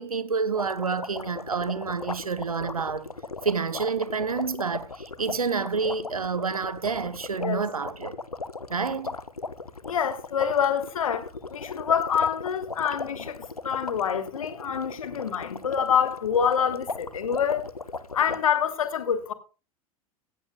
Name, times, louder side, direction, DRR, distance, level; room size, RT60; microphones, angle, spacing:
voice 1, 0.0-3.1 3.4-8.2 8.7-9.1, right 5 dB, 80° right, 0.8 m, -28 dB
sound 1, 0.5-18.4, left 3 dB, 85° left, 0.7 m, -38 dB
voice 2, 9.9-13.4 13.6-17.6 18.1-19.3, left 7 dB, 70° left, 1.5 m, -26 dB
16.5 x 13.0 x 2.3 m
figure-of-eight pair, 80°, 18 cm